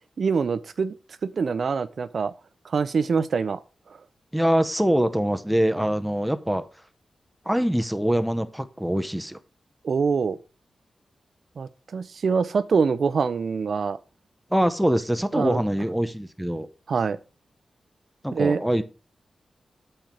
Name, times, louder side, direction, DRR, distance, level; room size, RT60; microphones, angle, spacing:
voice 1, 0.2-0.9 1.2-2.3 2.6-3.6 9.8-10.4 11.6-14.0 15.3-15.6 16.9-17.2 18.3-18.6, right 5 dB, 60° right, 0.5 m, -24 dB
voice 2, 4.3-6.6 7.5-9.4 14.5-16.7 18.2-18.8, equal, 5° right, 0.7 m, -24 dB
7.9 x 4.4 x 5.1 m
wide cardioid pair, 130°, 0 cm